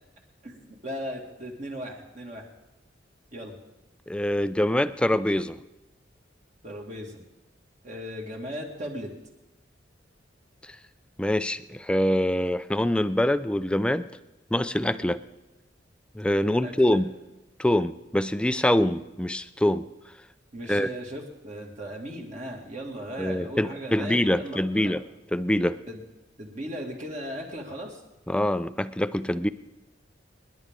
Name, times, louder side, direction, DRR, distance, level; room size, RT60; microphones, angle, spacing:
voice 1, 0.4-2.5 3.3-3.6 6.6-7.2 7.8-9.1 16.6-17.0 20.5-24.9 25.9-26.0 26.4-28.0, equal, 40° right, 0 dB, 2.2 m, -37 dB
voice 2, 4.1-5.6 11.2-14.1 14.5-15.2 16.1-17.1 17.6-19.9 20.7-20.9 23.2-25.0 25.3-25.8 28.3-29.5, left 1 dB, 5° left, 13 dB, 0.4 m, -24 dB
27.0 x 10.5 x 3.7 m, 0.99 s
head